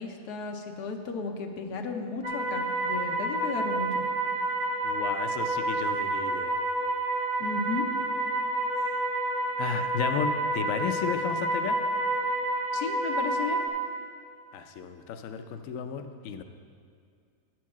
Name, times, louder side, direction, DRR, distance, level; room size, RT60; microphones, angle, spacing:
voice 1, 0.0-4.0 7.4-7.9 12.7-13.6, left 4 dB, 85° left, 4 dB, 1.3 m, -34 dB
sound 1, 2.2-13.7, right 2 dB, 50° right, 1.5 m, -29 dB
voice 2, 4.8-6.6 9.6-11.8 14.5-16.4, left 7 dB, 70° left, 7 dB, 0.9 m, -33 dB
9.4 x 4.6 x 7.2 m, 2.2 s
omnidirectional pair, 1.7 m